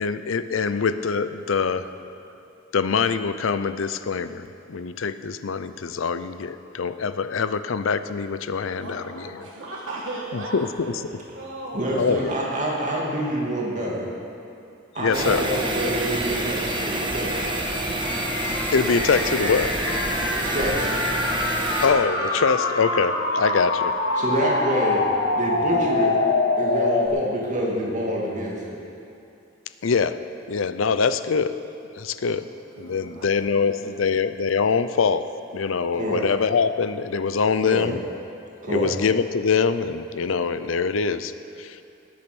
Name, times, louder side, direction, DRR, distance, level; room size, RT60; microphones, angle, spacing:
voice 1, 0.0-1.9 2.7-9.3 10.3-11.0 12.0-12.3 15.0-15.4 18.7-19.7 21.8-23.9 29.8-30.1 30.5-31.6 31.9-32.4 32.8-35.2 35.5-38.0 38.7-41.3 41.6-41.8, left 5 dB, 75° left, 12 dB, 0.5 m, -24 dB
voice 2, 8.8-11.9 12.5-12.6 32.3-34.1, right 2 dB, 70° right, -5 dB, 1.6 m, -37 dB
voice 3, 11.7-14.1 14.9-17.5 20.4-20.9 24.2-25.0 25.3-26.1 26.6-28.8 35.9-36.2 37.6-37.9 38.6-38.9, right 1 dB, 40° right, -3 dB, 2.5 m, -27 dB
sound 1, 15.1-21.9, right 2 dB, 25° right, 1.3 m, -27 dB
sound 2, 15.2-27.1, left 3 dB, 60° left, 1.4 m, -26 dB
Trumpet, 18.0-25.4, left 1 dB, 20° left, 1.5 m, -37 dB
19.5 x 8.6 x 6.2 m, 2.6 s
head